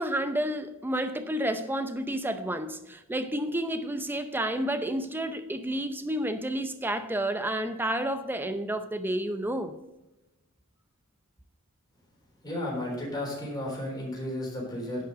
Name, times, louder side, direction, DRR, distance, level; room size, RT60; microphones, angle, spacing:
voice 1, 0.0-9.7, right 1 dB, 10° right, 0.6 m, -30 dB
voice 2, 12.4-15.1, left 1 dB, 20° left, 3.6 m, -33 dB
11.0 x 5.6 x 5.1 m
head